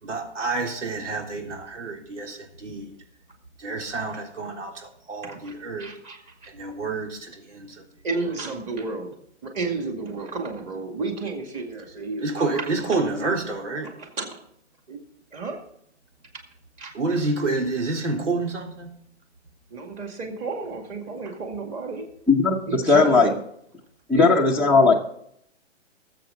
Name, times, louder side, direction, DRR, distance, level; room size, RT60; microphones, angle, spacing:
voice 1, 0.0-2.9 3.6-5.9 6.5-7.8 12.2-13.9 16.9-18.9, right 3 dB, 90° right, 3.5 m, -28 dB
voice 2, 5.2-6.5 8.0-9.1 9.4-13.3 13.8-14.4 14.9-15.0 15.3-15.6 16.8-16.9 19.7-22.1 22.7-23.4 24.1-24.9, right 3 dB, 20° right, 2.1 m, -32 dB
voice 3, 22.3-23.3 24.1-24.9, left 4 dB, 5° right, 0.8 m, -17 dB
20.0 x 7.6 x 3.9 m
hypercardioid pair, 150°, 35 cm